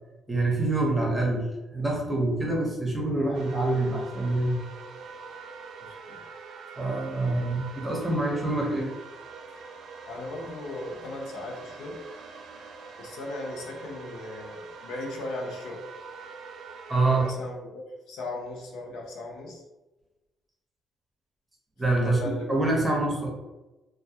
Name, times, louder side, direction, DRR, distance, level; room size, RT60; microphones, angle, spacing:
voice 1, 0.3-1.5 1.7-4.6 6.8-8.9 16.9-17.2 21.8-22.2 22.5-23.3, right 2 dB, 15° right, -2 dB, 0.8 m, -26 dB
sound 1, 3.3-17.3, right 4 dB, 75° right, 0.4 m, -44 dB
voice 2, 5.8-6.2 10.1-12.0 13.0-15.8 17.1-19.6 22.0-22.9, left 2 dB, 90° left, -1 dB, 0.5 m, -37 dB
2.2 x 2.2 x 2.7 m, 1.1 s
cardioid pair, 90°, 0 cm